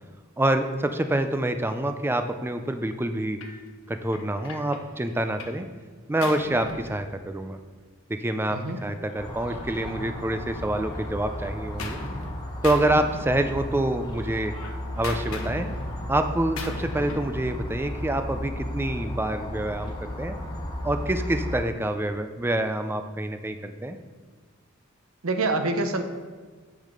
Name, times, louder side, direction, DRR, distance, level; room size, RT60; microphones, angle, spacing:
voice 1, 0.4-3.4 3.9-5.7 6.1-7.6 8.1-12.0 12.6-14.5 15.0-15.7 16.1-20.4 20.8-24.0, right 1 dB, 10° right, 7 dB, 0.4 m, -27 dB
Gunshot gunfire, 3.4-3.6 4.1-5.6 5.9-7.6 8.6-10.4 10.8-12.3 12.6-13.9 14.2-17.4, left 2 dB, 80° left, 1.2 m, -40 dB
voice 2, 8.5-8.8 25.2-26.0, right 2 dB, 85° right, 7 dB, 0.9 m, -26 dB
sound 1, 9.2-21.6, left 1 dB, 20° left, 1.7 m, -34 dB
8.3 x 6.5 x 5.1 m, 1.5 s
head